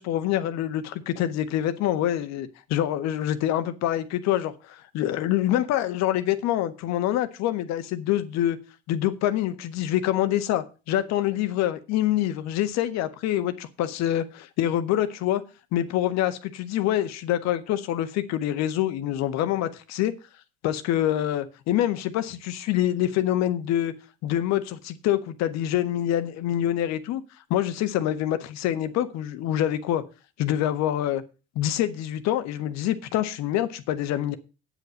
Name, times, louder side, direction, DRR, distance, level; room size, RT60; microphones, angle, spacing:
voice 1, 0.0-8.6 8.9-15.4 15.7-20.1 20.6-23.9 24.2-27.2 27.5-30.0 30.4-31.2 31.5-34.4, left 12 dB, 65° left, 1.6 m, -26 dB
9.1 x 8.3 x 6.5 m
hypercardioid pair, 65°, 29 cm